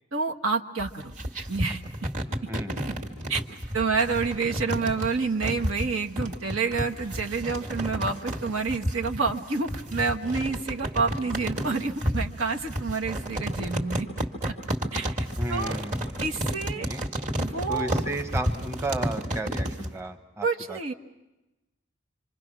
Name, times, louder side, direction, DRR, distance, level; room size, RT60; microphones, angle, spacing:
voice 1, 0.1-1.1 1.5-1.8 3.3-3.4 3.7-14.1 14.9-15.8 16.2-16.9 17.3-18.0 20.4-20.9, right 4 dB, 80° right, 3 dB, 1.4 m, -28 dB
sound 1, 0.8-19.9, equal, 35° right, 2.1 m, -31 dB
voice 2, 2.5-2.8 15.4-16.2 16.8-17.0 17.7-20.9, right 1 dB, 15° right, 5 dB, 1.1 m, -34 dB
26.5 x 26.5 x 6.1 m, 1.0 s
head